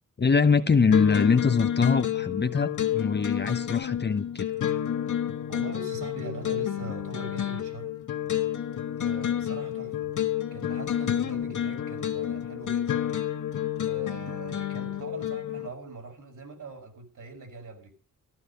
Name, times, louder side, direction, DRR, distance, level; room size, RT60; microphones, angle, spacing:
voice 1, 0.2-4.5, left 5 dB, 30° left, 11 dB, 1.0 m, -23 dB
sound 1, 0.9-15.7, left 10 dB, 65° left, 1.7 m, -30 dB
voice 2, 5.5-7.9 9.0-10.1 10.5-13.0 13.9-17.9, right 2 dB, 65° right, 2 dB, 5.7 m, -41 dB
14.0 x 13.5 x 5.3 m, 0.35 s
wide cardioid pair, 125°, 33 cm